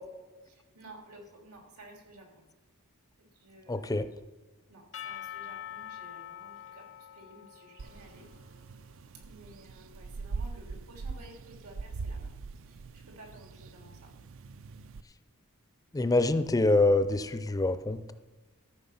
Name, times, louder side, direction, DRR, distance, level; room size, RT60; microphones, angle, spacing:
voice 1, 0.4-2.3 3.2-4.1 4.7-6.9 7.1-8.3 9.2-12.3 12.7-14.1, right 1 dB, 85° right, 1 dB, 3.2 m, -53 dB
voice 2, 3.7-4.1 15.9-18.1, left 2 dB, 15° left, 11 dB, 0.4 m, -25 dB
Percussion / Church bell, 4.9-8.8, left 11 dB, 60° left, 0.7 m, -45 dB
sound 1, 7.8-15.0, right 4 dB, 60° right, 0.4 m, -42 dB
14.0 x 6.5 x 5.5 m, 1.2 s
head